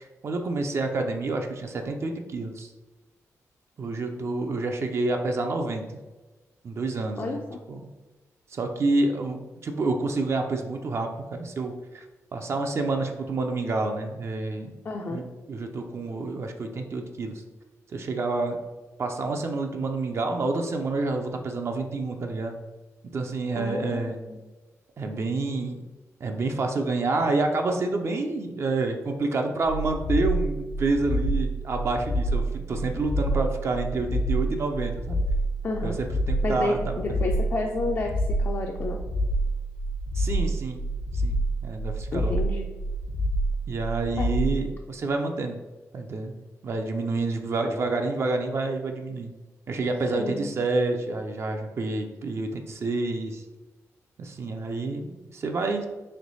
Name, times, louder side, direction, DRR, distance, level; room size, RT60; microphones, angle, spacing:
voice 1, 0.0-2.7 3.8-5.8 6.6-7.4 7.7-7.8 8.5-12.0 12.3-14.7 15.1-17.4 17.9-18.6 19.0-22.5 23.1-24.2 25.0-25.8 26.2-35.2 35.8-37.3 40.1-40.8 41.1-41.4 41.6-42.4 43.7-45.6 45.9-46.4 46.6-49.3 49.7-53.4 54.2-55.9, right 3 dB, 50° right, 4 dB, 0.4 m, -28 dB
voice 2, 7.2-7.6 14.8-15.2 23.6-24.4 35.6-36.0 36.4-39.0 42.1-42.7 44.2-44.3 50.1-50.6, left 2 dB, 45° left, 1 dB, 0.4 m, -30 dB
sound 1, 29.6-44.6, right 1 dB, 75° left, 0.8 m, -27 dB
3.2 x 3.0 x 4.0 m, 1.2 s
wide cardioid pair, 110°, 6 cm